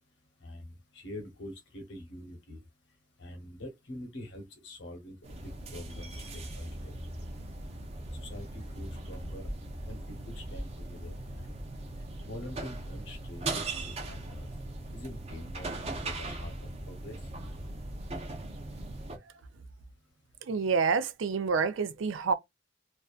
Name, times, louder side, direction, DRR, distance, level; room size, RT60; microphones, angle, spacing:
voice 1, 0.4-2.6 3.2-5.2 5.7-6.9 8.2-9.5 9.9-11.5 12.3-14.5 14.9-15.7 16.0-17.2, left 1 dB, 65° left, 1.0 m, -45 dB
sound 1, 5.2-19.2, right 2 dB, 35° right, 0.6 m, -39 dB
voice 2, 20.4-22.3, right 5 dB, 80° right, 0.4 m, -28 dB
2.5 x 2.2 x 2.4 m
head